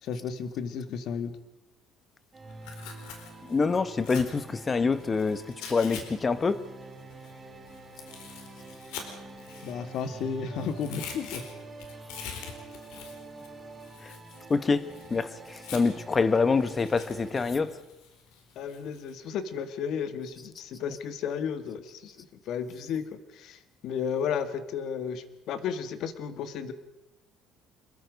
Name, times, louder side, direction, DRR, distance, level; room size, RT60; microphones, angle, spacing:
voice 1, 0.0-1.3 9.6-11.4 18.6-26.7, left 7 dB, 60° left, 10 dB, 1.9 m, -33 dB
sound 1, 2.3-17.7, right 2 dB, 20° right, 6.5 m, -46 dB
Tearing, 2.5-6.0 6.3-10.3 10.6-16.1 16.6-19.1, left 7 dB, 85° left, 4.4 m, -45 dB
voice 2, 3.4-6.6 14.0-14.2 14.5-17.8, left 4 dB, 20° left, 14 dB, 1.0 m, -26 dB
26.0 x 22.0 x 5.3 m, 0.97 s
cardioid pair, 145°, 0 cm